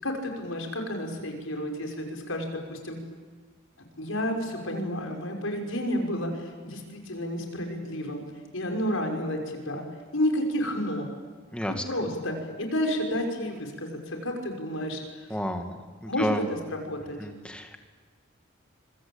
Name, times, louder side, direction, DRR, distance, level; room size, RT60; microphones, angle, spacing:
voice 1, 0.0-3.0 4.0-8.2 8.5-9.8 10.1-11.1 11.9-15.3 16.1-16.4 16.7-17.2, equal, 85° left, 2 dB, 5.8 m, -31 dB
voice 2, 15.3-16.4 17.2-17.8, equal, 5° left, 5 dB, 2.3 m, -31 dB
26.0 x 24.0 x 9.0 m, 1.5 s
head